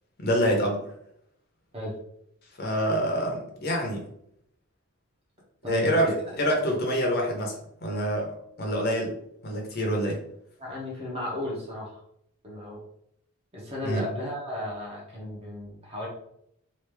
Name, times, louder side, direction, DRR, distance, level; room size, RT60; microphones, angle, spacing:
voice 1, 0.2-0.8 2.6-4.1 5.7-6.1 6.4-7.5 7.8-8.3 8.6-9.1 9.4-10.2 13.8-14.0, equal, 45° left, 0 dB, 0.8 m, -26 dB
voice 2, 5.6-6.1 10.6-12.0 12.4-12.8 13.5-16.1, left 1 dB, 25° right, -4 dB, 1.2 m, -34 dB
3.3 x 2.7 x 3.2 m, 0.73 s
head